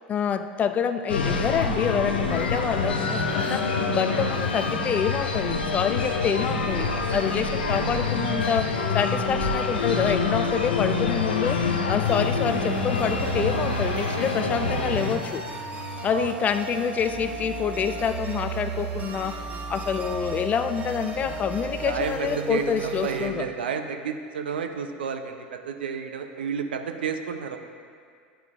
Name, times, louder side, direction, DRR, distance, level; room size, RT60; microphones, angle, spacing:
voice 1, 0.1-15.4 16.0-19.4 19.7-23.5, left 7 dB, 25° left, 10 dB, 0.3 m, -27 dB
sound 1, 1.1-15.2, left 4 dB, 75° left, 0.6 m, -26 dB
sound 2, 12.0-23.3, right 5 dB, 25° right, 0.9 m, -34 dB
voice 2, 14.1-14.7 16.1-16.3 21.8-22.8 23.0-27.6, right 6 dB, 70° right, 5 dB, 0.5 m, -31 dB
11.0 x 4.6 x 2.4 m, 2.2 s
figure-of-eight pair, 80°, 5 cm